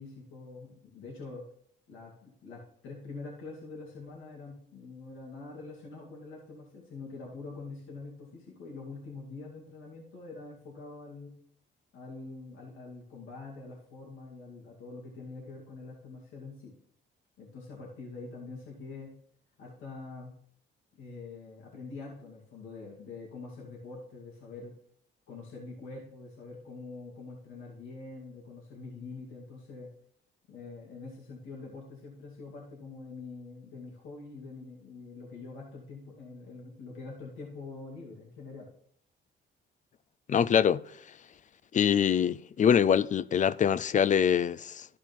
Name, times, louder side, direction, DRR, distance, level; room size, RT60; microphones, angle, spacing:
voice 1, 0.0-1.4 1.9-11.4 11.9-16.7 17.4-19.1 19.6-20.3 21.0-24.7 25.3-29.9 30.5-38.7, left 3 dB, 85° left, 2.4 m, -45 dB
voice 2, 40.3-40.8 41.7-44.9, left 8 dB, 40° left, 0.4 m, -24 dB
13.0 x 5.0 x 3.6 m
cardioid pair, 90°, 20 cm